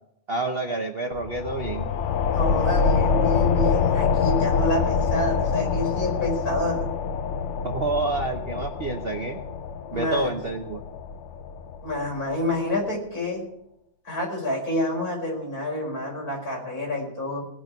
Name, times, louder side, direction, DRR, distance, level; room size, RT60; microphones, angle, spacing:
voice 1, 0.3-1.9 7.6-9.4 9.9-10.8, right 2 dB, 40° right, 4 dB, 1.0 m, -28 dB
sound 1, 1.1-12.3, left 5 dB, 80° left, 0.6 m, -25 dB
voice 2, 2.3-6.8 9.9-10.3 11.8-13.4 14.1-17.4, left 1 dB, 50° left, -2 dB, 5.4 m, -28 dB
18.5 x 6.3 x 9.1 m, 0.78 s
omnidirectional pair, 2.0 m